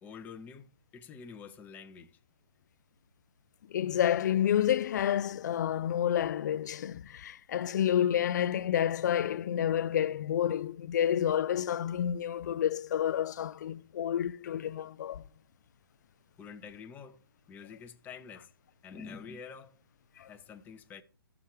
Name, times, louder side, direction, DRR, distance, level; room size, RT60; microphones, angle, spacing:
voice 1, 0.0-2.1 16.4-17.2 17.5-18.5 18.8-19.8 20.3-21.0, left 6 dB, 15° left, 0.7 m, -47 dB
voice 2, 3.7-15.2 20.2-20.3, left 10 dB, 50° left, 0.4 m, -29 dB
13.0 x 6.0 x 4.9 m
hypercardioid pair, 140°, 12 cm